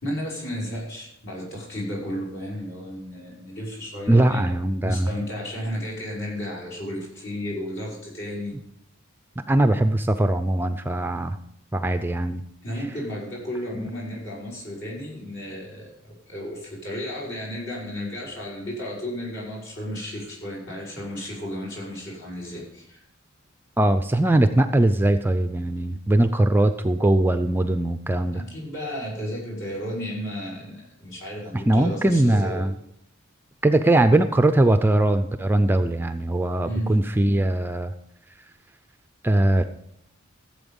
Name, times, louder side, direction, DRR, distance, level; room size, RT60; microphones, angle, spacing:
voice 1, 0.0-4.5 4.8-8.6 12.6-23.0 28.3-32.6 36.6-36.9, equal, 55° left, -4 dB, 5.7 m, -33 dB
voice 2, 4.1-5.1 9.5-11.4 11.7-12.4 13.8-13.9 23.8-28.4 31.5-32.7 33.6-37.9 39.2-39.6, right 1 dB, 10° right, 9 dB, 0.4 m, -21 dB
14.5 x 7.9 x 5.3 m, 0.74 s
head